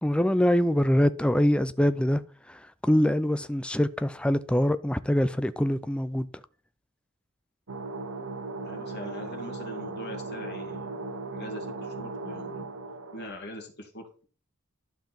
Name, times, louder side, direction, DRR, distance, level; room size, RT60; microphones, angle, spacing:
voice 1, 0.0-2.2 2.5-6.3, equal, 5° left, 0.4 m, -24 dB
sound 1, 7.7-13.3, right 3 dB, 70° right, 1.0 m, -37 dB
voice 2, 8.6-12.8 13.1-14.3, left 1 dB, 50° left, 2.4 m, -43 dB
11.5 x 5.7 x 4.4 m
head